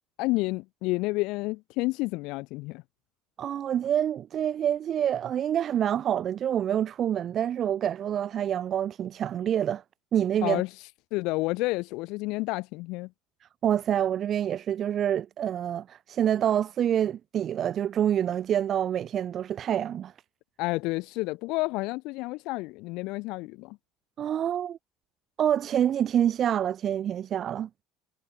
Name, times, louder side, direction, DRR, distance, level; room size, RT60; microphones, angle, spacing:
voice 1, 0.2-2.8 10.4-10.7 11.1-13.1 20.6-23.8, left 23 dB, 60° left, 1.2 m, -30 dB
voice 2, 3.4-9.8 10.1-10.6 13.6-20.1 24.2-24.8 25.4-27.7, right 10 dB, 30° right, 1.1 m, -27 dB
cardioid pair, 170°, 0 cm